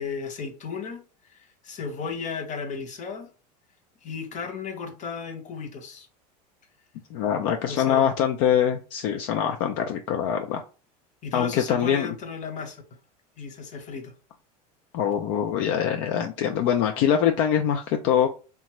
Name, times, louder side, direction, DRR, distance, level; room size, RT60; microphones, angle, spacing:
voice 1, 0.0-3.3 4.0-6.1 7.7-8.1 11.2-12.8 13.4-14.1, left 5 dB, 35° left, 0.9 m, -35 dB
voice 2, 7.1-10.6 11.3-12.1 14.9-18.3, left 9 dB, 60° left, 0.4 m, -24 dB
2.9 x 2.2 x 2.9 m
hypercardioid pair, 100°, 21 cm